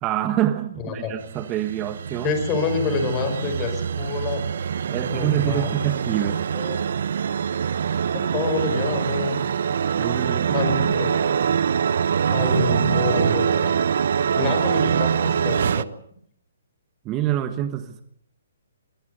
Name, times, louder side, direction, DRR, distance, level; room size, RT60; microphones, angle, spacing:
voice 1, 0.0-2.4 4.9-6.4 10.0-10.7 11.1-11.2 17.0-18.0, right 12 dB, 20° right, 9 dB, 1.3 m, -26 dB
sound 1, 1.2-15.8, right 7 dB, 65° right, 0.9 m, -24 dB
voice 2, 2.2-4.4 5.0-5.9 6.5-6.8 8.1-9.4 10.5-11.4 12.3-13.8 14.3-15.9, left 5 dB, 20° left, 6 dB, 5.3 m, -27 dB
21.5 x 20.0 x 8.1 m, 0.66 s
hypercardioid pair, 155°, 0 cm